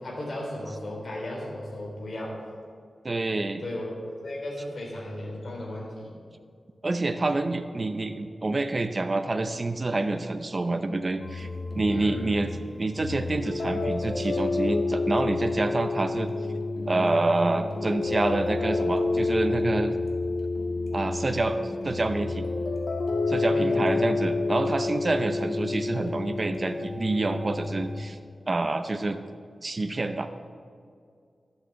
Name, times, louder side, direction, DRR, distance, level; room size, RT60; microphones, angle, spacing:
voice 1, 0.0-2.4 3.6-6.1 11.9-12.4 23.5-23.8, left 1 dB, 55° left, -3 dB, 3.7 m, -35 dB
voice 2, 3.0-3.6 6.8-11.5 11.8-12.5 12.8-16.3 16.9-19.9 20.9-22.5 23.3-28.2 28.5-29.2 29.6-30.3, right 2 dB, 35° right, 7 dB, 0.7 m, -27 dB
sound 1, 11.2-28.0, left 3 dB, 75° left, 1.9 m, -29 dB
12.0 x 7.9 x 8.0 m, 2.3 s
wide cardioid pair, 105°, 0 cm